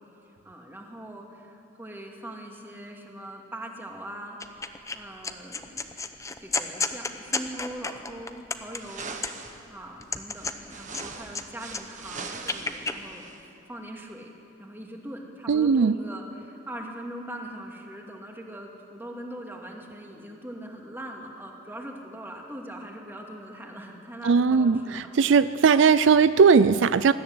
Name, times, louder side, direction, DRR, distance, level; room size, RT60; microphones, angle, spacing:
voice 1, 0.4-4.4 4.9-5.8 6.4-9.2 9.7-13.3 13.7-14.3 14.6-25.8, right 1 dB, 10° right, 0 dB, 2.3 m, -41 dB
sound 1, 4.4-5.0 5.2-9.6 10.0-11.4 11.7-13.0, left 4 dB, 15° left, 0.8 m, -32 dB
sound 2, 8.7-9.6 10.3-13.4, right 4 dB, 40° right, 1.3 m, -41 dB
voice 2, 15.5-16.0 24.2-27.1, right 5 dB, 70° right, 14 dB, 0.4 m, -19 dB
20.5 x 14.0 x 9.5 m, 2.6 s
head